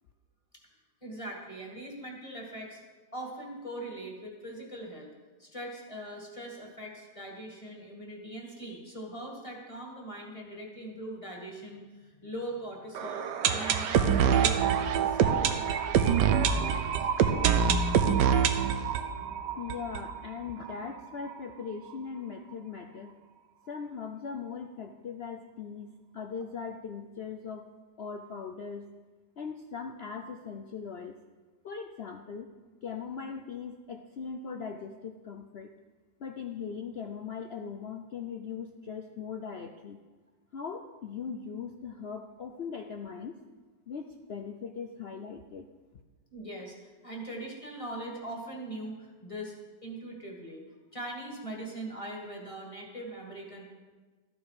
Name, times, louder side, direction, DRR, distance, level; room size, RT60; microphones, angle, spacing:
voice 1, 1.0-2.8 3.1-5.1 5.4-17.0 46.3-49.5 49.8-50.6 50.9-53.6, right 1 dB, 20° left, -1 dB, 1.9 m, -41 dB
sound 1, 13.0-20.7 21.0-21.1 21.3-21.4 21.9-22.0, right 7 dB, 85° right, 1.4 m, -26 dB
voice 2, 19.6-23.1 23.7-27.7 28.0-28.9 29.4-31.2 31.6-32.5 32.8-35.7 36.2-40.0 40.5-43.4 43.9-45.7, left 6 dB, 65° left, 4 dB, 0.6 m, -40 dB
13.5 x 9.2 x 4.8 m, 1.3 s
omnidirectional pair, 1.8 m